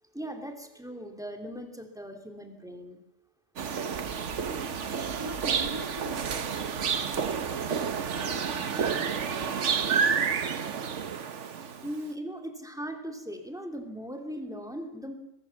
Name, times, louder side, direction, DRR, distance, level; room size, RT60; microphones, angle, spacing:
voice 1, 0.1-3.0 11.8-15.1, equal, 5° right, 4 dB, 3.0 m, -39 dB
sound 1, 3.6-12.0, right 6 dB, 85° right, 1.4 m, -30 dB
voice 2, 4.7-10.8, right 1 dB, 20° right, 2 dB, 2.2 m, -45 dB
22.0 x 22.0 x 7.3 m, 0.86 s
omnidirectional pair, 1.2 m